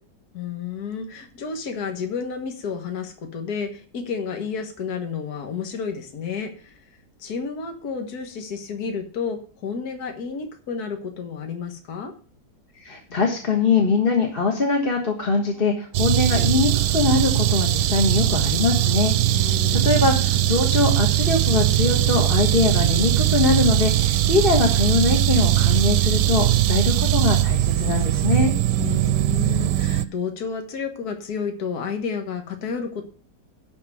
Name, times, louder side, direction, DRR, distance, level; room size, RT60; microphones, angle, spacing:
voice 1, 0.3-6.8 7.2-12.1 19.3-20.1 28.8-33.0, left 6 dB, 60° left, 5 dB, 1.9 m, -31 dB
voice 2, 12.8-28.5, left 4 dB, 35° left, 1 dB, 1.6 m, -22 dB
sound 1, 15.9-30.0, right 13 dB, 75° right, 1.2 m, -20 dB
11.5 x 4.7 x 7.8 m, 0.40 s
omnidirectional pair, 1.9 m